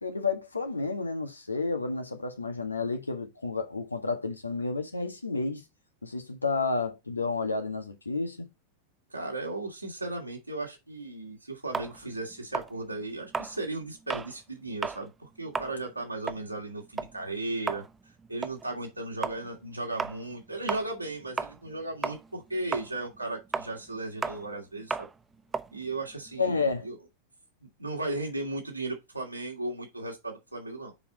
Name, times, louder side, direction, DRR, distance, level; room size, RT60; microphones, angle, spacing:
voice 1, 0.0-5.6 6.0-8.5 26.4-26.9, left 3 dB, 80° left, 1.5 m, -31 dB
voice 2, 9.1-17.8 18.3-25.1 25.7-27.0 27.8-30.9, right 2 dB, 85° right, 2.7 m, -36 dB
sound 1, 11.7-14.3 14.7-15.0 15.4-21.8 22.0-26.8, right 4 dB, 15° right, 0.6 m, -35 dB
7.0 x 5.4 x 4.1 m
figure-of-eight pair, 90°, 0 cm